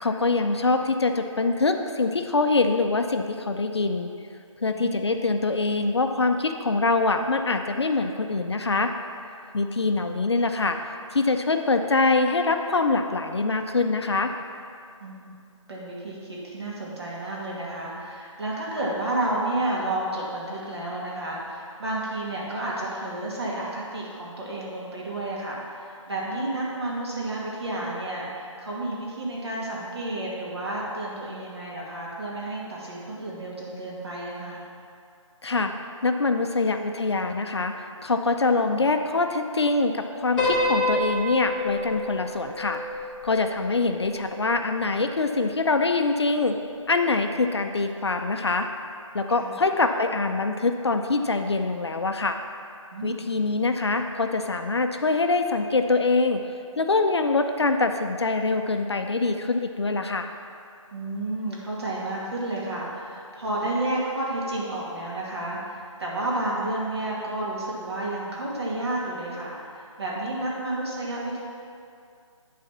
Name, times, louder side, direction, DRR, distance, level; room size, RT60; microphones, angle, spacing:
voice 1, 0.0-4.1 4.6-8.9 9.5-10.8 11.1-14.3 35.4-35.7 36.0-37.7 38.0-42.8 43.2-46.6 46.9-48.7 49.1-52.4 53.0-56.4 56.8-60.3, left 3 dB, 55° left, 6 dB, 0.6 m, -24 dB
voice 2, 4.7-5.1 15.0-15.3 15.7-34.7 49.4-49.6 52.9-53.3 60.9-71.4, right 1 dB, 50° right, -5 dB, 2.3 m, -31 dB
Piano, 40.4-44.8, left 2 dB, 5° left, 1.7 m, -29 dB
11.0 x 4.1 x 5.9 m, 2.4 s
figure-of-eight pair, 175°, 17 cm